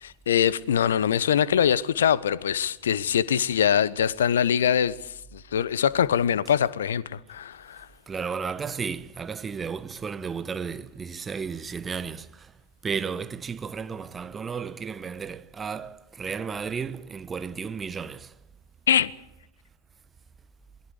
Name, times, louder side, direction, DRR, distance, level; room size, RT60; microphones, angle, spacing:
voice 1, 0.0-7.9 18.9-19.1, left 9 dB, 65° left, 1.0 m, -23 dB
voice 2, 8.1-12.5 12.8-18.4, right 6 dB, 15° right, 1.1 m, -33 dB
28.0 x 21.5 x 5.1 m
figure-of-eight pair, 90°, 0 cm